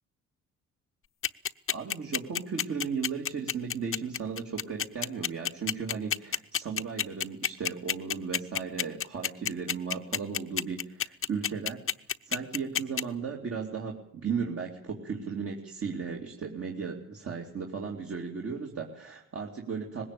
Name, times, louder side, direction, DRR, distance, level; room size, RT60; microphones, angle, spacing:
sound 1, 1.2-13.0, left 9 dB, 45° left, 0.8 m, -28 dB
voice 1, 1.7-11.8 12.2-20.1, right 5 dB, 50° right, 0 dB, 3.0 m, -36 dB
20.0 x 17.0 x 8.5 m, 0.69 s
cardioid pair, 90°, 30 cm